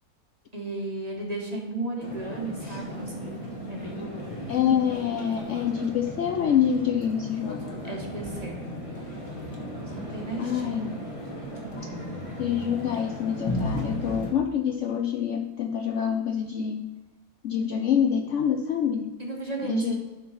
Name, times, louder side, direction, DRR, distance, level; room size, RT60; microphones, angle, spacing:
voice 1, 0.5-4.1 7.8-8.6 10.0-10.9 19.2-19.9, right 2 dB, 25° right, 0 dB, 1.5 m, -34 dB
sound 1, 2.0-14.3, equal, 20° left, 1.4 m, -36 dB
voice 2, 4.5-7.8 10.4-10.9 12.4-16.8 17.4-19.1 19.6-19.9, left 8 dB, 60° left, 4 dB, 0.8 m, -26 dB
11.5 x 4.4 x 5.8 m, 1.1 s
omnidirectional pair, 1.7 m